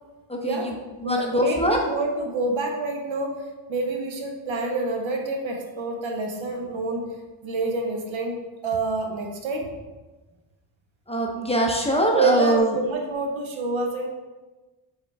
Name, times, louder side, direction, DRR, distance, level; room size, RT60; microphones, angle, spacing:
voice 1, 0.4-0.8 1.0-7.2 7.4-9.7 12.1-14.1, right 3 dB, 80° right, 2 dB, 0.8 m, -28 dB
voice 2, 1.0-1.8 11.1-12.7, equal, 15° left, 0 dB, 0.5 m, -22 dB
4.5 x 3.5 x 3.3 m, 1.2 s
wide cardioid pair, 120°, 47 cm